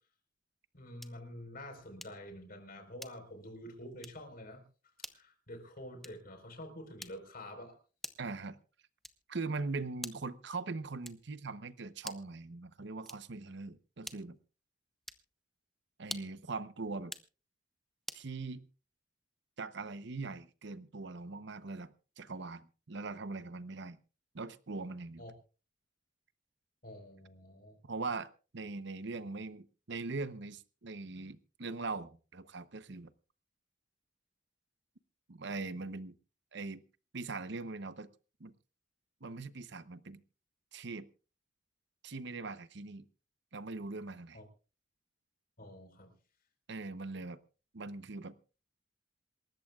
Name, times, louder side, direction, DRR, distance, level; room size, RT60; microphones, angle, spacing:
voice 1, 0.7-4.6 5.1-7.8 25.2-25.3 26.8-27.8 44.3-44.4 45.6-46.1, left 1 dB, 50° left, 5 dB, 4.4 m, -48 dB
sound 1, 1.0-1.3 2.0-2.3 3.0-3.4 4.0-4.3 5.0-5.3 6.0-6.3 7.0-7.4 8.0-8.4 9.0-9.4 10.0-10.4 11.0-11.4 12.0-12.4 13.0-13.4 14.0-14.4 15.0-15.3 16.0-16.4 17.0-17.3 18.1-18.3, equal, ahead, 0.9 m, -47 dB
voice 2, 8.2-8.6 9.3-14.4 16.0-17.1 18.1-18.6 19.6-24.0 24.3-25.2 27.8-33.1 35.3-36.2 36.5-36.8 37.1-38.1 38.4-38.5 39.2-40.2 40.7-41.1 42.0-43.0 43.5-44.4 46.7-47.4 47.7-48.3, right 3 dB, 65° right, 14 dB, 0.8 m, -41 dB
27.5 x 13.5 x 2.4 m, 0.36 s
head